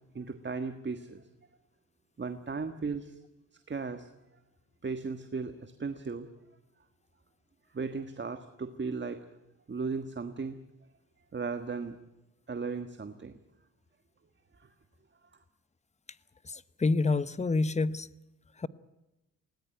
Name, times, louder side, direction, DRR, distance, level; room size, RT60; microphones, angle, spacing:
voice 1, 0.1-1.3 2.2-3.2 3.7-4.1 4.8-6.3 7.7-9.2 9.7-10.6 11.3-12.0 12.5-13.3 14.6-14.7, right 4 dB, 35° right, 8 dB, 1.6 m, -36 dB
voice 2, 16.4-18.1 18.6-18.7, left 3 dB, 20° left, 16 dB, 0.9 m, -28 dB
20.5 x 18.5 x 9.2 m, 0.96 s
cardioid pair, 75°, 31 cm